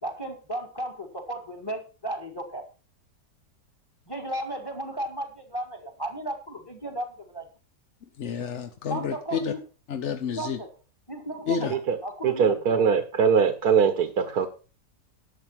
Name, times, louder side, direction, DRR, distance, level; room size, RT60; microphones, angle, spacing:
voice 1, 0.0-2.6 4.1-7.5 8.9-9.6 10.3-10.7 11.1-11.6 12.0-12.8, right 1 dB, 15° left, 7 dB, 1.8 m, -34 dB
voice 2, 8.2-9.5 9.9-10.6 11.5-11.7, left 7 dB, 55° left, 8 dB, 0.9 m, -30 dB
voice 3, 12.2-14.5, right 6 dB, 65° right, 9 dB, 1.5 m, -22 dB
11.5 x 7.4 x 5.8 m, 0.35 s
omnidirectional pair, 1.8 m